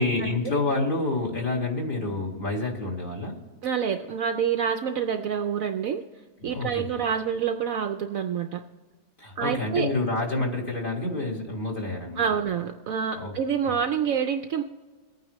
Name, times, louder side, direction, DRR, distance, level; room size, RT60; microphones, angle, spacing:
voice 1, 0.0-3.4 6.5-7.0 9.2-12.2 13.1-13.3, left 2 dB, 30° left, -2 dB, 2.1 m, -28 dB
voice 2, 3.6-6.0 6.4-8.6 9.4-9.9 12.2-14.6, right 7 dB, 65° right, 6 dB, 0.9 m, -27 dB
22.5 x 9.1 x 3.1 m, 1.4 s
omnidirectional pair, 1.8 m